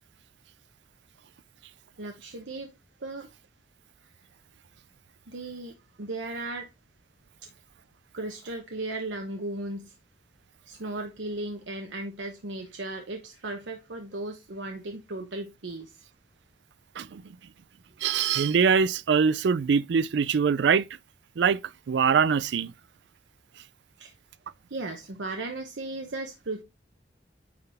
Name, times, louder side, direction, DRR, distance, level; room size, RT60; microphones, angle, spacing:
voice 1, 2.0-2.7 3.0-3.3 5.3-6.7 8.1-9.9 10.7-15.9 24.0-24.1 24.7-26.6, right 2 dB, 90° right, 0.9 m, -36 dB
voice 2, 18.0-20.8 21.4-21.6 21.9-22.7, right 6 dB, 75° right, 0.4 m, -23 dB
9.6 x 3.9 x 3.4 m
head